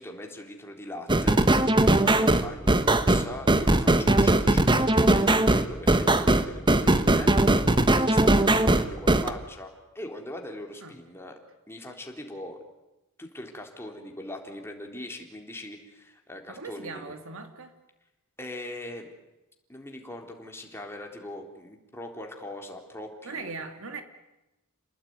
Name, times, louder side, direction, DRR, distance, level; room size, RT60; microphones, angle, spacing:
voice 1, 0.0-7.6 7.9-11.3 11.7-12.6 13.2-17.1 18.4-19.1 19.7-23.5, left 1 dB, 10° left, 2 dB, 3.8 m, -41 dB
Bitty Boss, 1.1-9.3, right 1 dB, 20° right, 1.3 m, -20 dB
voice 2, 16.5-17.7 23.2-24.0, right 4 dB, 65° right, 7 dB, 2.7 m, -39 dB
28.5 x 20.0 x 9.6 m, 0.97 s
head